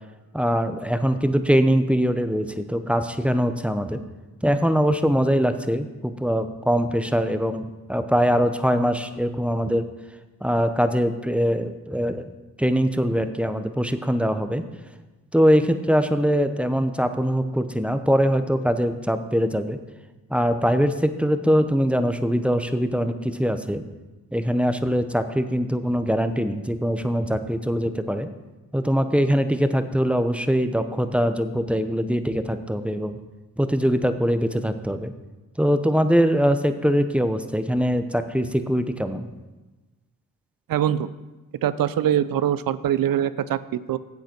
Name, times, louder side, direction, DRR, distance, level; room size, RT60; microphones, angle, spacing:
voice 1, 0.3-4.0 4.4-9.9 10.4-12.3 12.6-14.6 15.3-19.8 20.3-23.8 24.3-28.3 28.7-33.1 33.6-35.1 35.6-39.3, equal, 5° right, 9 dB, 0.8 m, -22 dB
voice 2, 40.7-41.1 41.6-44.0, right 10 dB, 65° right, 16 dB, 0.5 m, -23 dB
10.5 x 7.9 x 4.5 m, 1.2 s
supercardioid pair, 45°, 36 cm